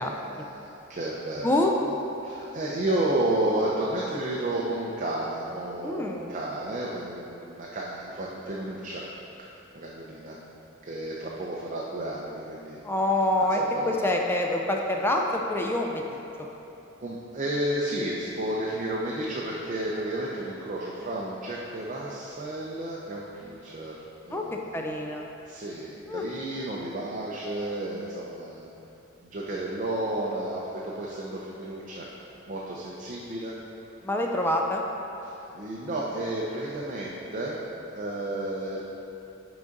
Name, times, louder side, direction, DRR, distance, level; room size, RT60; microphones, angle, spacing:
voice 1, 0.0-1.6 2.2-9.0 9.7-10.4 10.8-12.8 13.4-14.1 17.0-24.8 25.5-28.7 29.2-32.1 32.5-33.5 35.2-37.6 37.9-38.8, right 1 dB, 40° right, -4 dB, 0.5 m, -32 dB
voice 2, 1.4-1.7 5.8-6.3 12.8-13.6 13.9-16.2 24.3-24.4 24.7-25.3 26.1-26.2 34.0-34.8, left 1 dB, 10° left, 1 dB, 0.3 m, -26 dB
6.0 x 3.9 x 5.2 m, 2.9 s
head